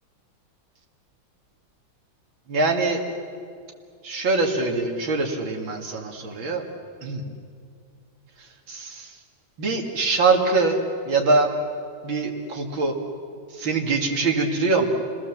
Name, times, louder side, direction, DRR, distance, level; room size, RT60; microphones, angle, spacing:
voice 1, 2.5-3.0 4.0-6.6 7.0-7.2 8.7-9.1 9.6-10.8 11.1-11.5 12.0-12.9 13.5-14.9, right 3 dB, 75° right, 2 dB, 3.0 m, -23 dB
29.5 x 19.5 x 7.3 m, 2.2 s
omnidirectional pair, 2.2 m